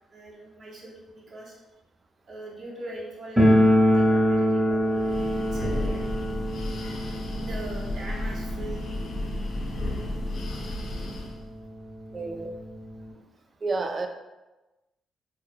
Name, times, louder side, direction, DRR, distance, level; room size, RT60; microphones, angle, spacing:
voice 1, 0.1-1.6 2.3-3.5 3.9-6.1 7.4-8.8, right 2 dB, 50° right, -4 dB, 0.8 m, -41 dB
sound 1, 3.4-10.1 10.3-10.4 10.7-10.8 11.5-11.6 11.9-13.1, equal, 15° right, 0.8 m, -24 dB
Breathing, 4.8-11.5, left 1 dB, 55° left, 0.5 m, -32 dB
voice 2, 12.1-12.5 13.6-14.1, right 3 dB, 35° right, 5 dB, 0.3 m, -29 dB
2.2 x 2.1 x 3.2 m, 1.1 s
cardioid pair, 90°, 0 cm